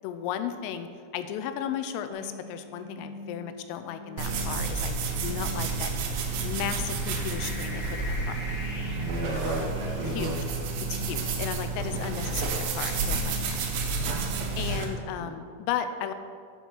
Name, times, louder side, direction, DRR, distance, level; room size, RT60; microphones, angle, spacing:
voice 1, 0.0-0.9 1.1-5.9 6.4-8.4 10.1-10.4 10.9-13.6 14.6-16.1, left 9 dB, 90° left, 9 dB, 3.2 m, -35 dB
sound 1, 2.1-14.8, left 2 dB, 60° left, 1.6 m, -42 dB
sound 2, 4.2-14.9, right 4 dB, 90° right, 2.1 m, -30 dB
voice 2, 8.9-10.4 13.8-14.2 15.2-15.3, right 1 dB, 65° right, -7 dB, 2.2 m, -34 dB
8.0 x 6.3 x 6.1 m, 2.2 s
omnidirectional pair, 5.8 m